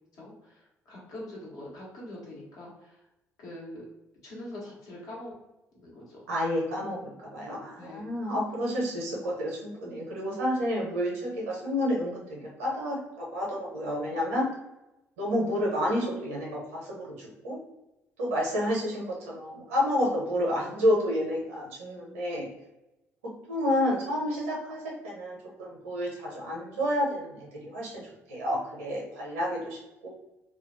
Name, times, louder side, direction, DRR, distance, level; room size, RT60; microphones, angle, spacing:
voice 1, 0.1-3.0 3.4-3.9 4.2-5.3 5.7-6.2 7.8-8.0, left 1 dB, 55° left, -4 dB, 1.0 m, -43 dB
voice 2, 6.3-14.5 15.2-17.6 18.2-22.5 23.5-28.0 28.3-30.1, equal, 75° right, -3 dB, 0.7 m, -30 dB
2.4 x 2.2 x 2.5 m, 0.94 s
figure-of-eight pair, 50°, 7 cm